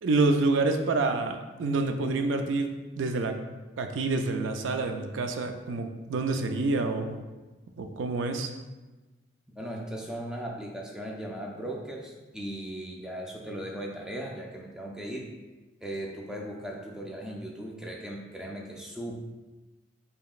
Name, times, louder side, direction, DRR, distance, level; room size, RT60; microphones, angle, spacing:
voice 1, 0.0-2.7 3.0-3.3 3.8-7.2 7.8-8.5, right 3 dB, 85° right, 6 dB, 0.4 m, -27 dB
voice 2, 9.6-15.3 15.8-19.1, right 1 dB, 5° right, -1 dB, 0.4 m, -38 dB
5.0 x 2.8 x 2.4 m, 1.2 s
head